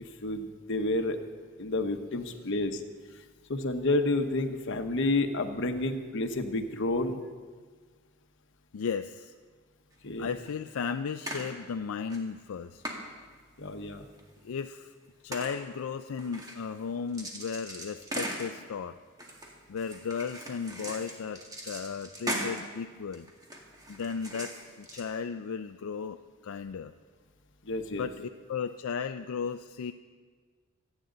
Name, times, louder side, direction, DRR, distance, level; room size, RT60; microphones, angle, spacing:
voice 1, 0.2-1.2 1.6-2.8 3.5-7.2 10.0-10.3 13.6-14.1 27.6-28.1, left 2 dB, 60° left, 6 dB, 1.0 m, -30 dB
voice 2, 8.7-9.3 10.2-12.8 14.4-14.9 15.2-19.0 19.7-23.3 23.9-26.9 27.9-29.9, left 6 dB, 80° left, 8 dB, 0.4 m, -35 dB
sound 1, 9.9-10.0 10.4-10.5 11.3-11.5 12.1-12.2 12.8-13.0 14.2-14.3 15.3-15.6 16.2-16.8 17.1-18.5 19.2-22.7 23.1-25.0, right 1 dB, 20° right, 2.0 m, -39 dB
25.5 x 9.2 x 3.9 m, 1.5 s
head